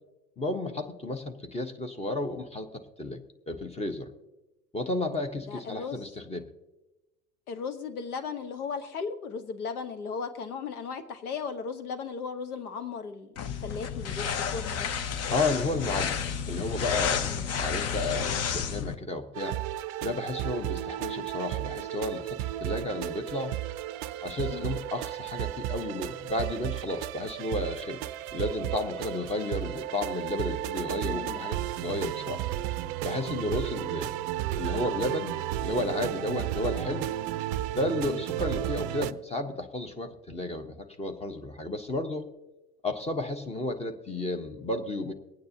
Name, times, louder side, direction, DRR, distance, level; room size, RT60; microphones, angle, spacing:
voice 1, 0.4-3.2 3.5-4.1 4.7-6.5 15.1-19.6 20.0-23.5 24.2-28.0 28.3-32.4 33.0-34.1 34.6-37.1 37.7-42.3 42.8-45.1, left 2 dB, 15° left, 6 dB, 1.1 m, -32 dB
voice 2, 5.5-6.0 7.5-13.3 13.6-14.9 17.3-17.5 24.5-24.7 31.0-31.3 36.3-36.5 38.0-38.2, left 5 dB, 70° left, 8 dB, 1.3 m, -36 dB
sound 1, 13.4-18.9, left 7 dB, 35° left, 0.8 m, -31 dB
sound 2, 19.3-39.1, right 13 dB, 45° right, 0.5 m, -33 dB
23.5 x 9.2 x 2.9 m, 1.0 s
figure-of-eight pair, 80°, 46 cm